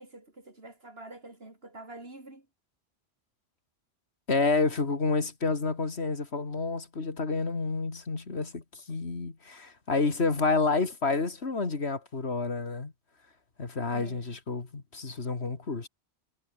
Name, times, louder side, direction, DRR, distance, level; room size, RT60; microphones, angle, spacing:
voice 1, 0.0-2.5 13.9-14.4, right 2 dB, 65° right, 4.7 m, -46 dB
voice 2, 4.3-12.9 13.6-15.9, left 3 dB, 70° left, 2.6 m, -29 dB
omnidirectional pair, 1.1 m